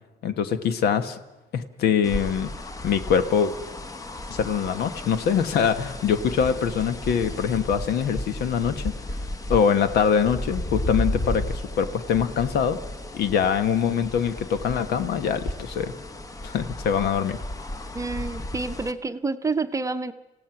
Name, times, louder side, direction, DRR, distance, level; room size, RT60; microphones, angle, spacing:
voice 1, 0.2-1.2 1.5-2.5 2.8-3.5 4.3-9.2 9.5-12.8 13.1-15.9 16.4-17.4, left 7 dB, 70° left, 10 dB, 1.4 m, -23 dB
sound 1, 2.0-18.9, left 1 dB, 20° left, 1.1 m, -34 dB
voice 2, 17.9-20.1, right 3 dB, 20° right, 9 dB, 0.8 m, -28 dB
28.0 x 16.5 x 6.0 m, 1.0 s
cardioid pair, 110°, 17 cm